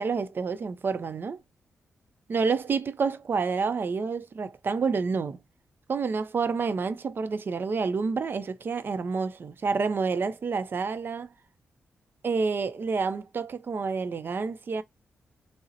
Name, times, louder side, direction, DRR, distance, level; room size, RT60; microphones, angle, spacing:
voice 1, 0.0-1.4 2.3-5.4 5.9-11.3 12.2-14.8, right 5 dB, 50° right, 0.5 m, -28 dB
3.8 x 2.1 x 2.8 m
cardioid pair, 70°, 5 cm